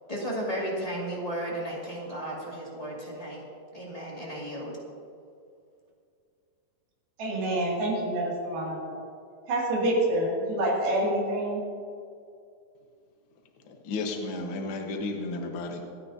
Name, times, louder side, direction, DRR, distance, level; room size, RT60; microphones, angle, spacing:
voice 1, 0.1-3.4 3.7-4.7, right 1 dB, 15° left, -5 dB, 1.2 m, -34 dB
voice 2, 7.2-9.0 9.5-11.6, right 1 dB, 75° right, -3 dB, 4.3 m, -27 dB
voice 3, 13.8-15.9, left 2 dB, 80° left, 2 dB, 1.1 m, -33 dB
26.5 x 9.7 x 2.8 m, 2.4 s
omnidirectional pair, 4.3 m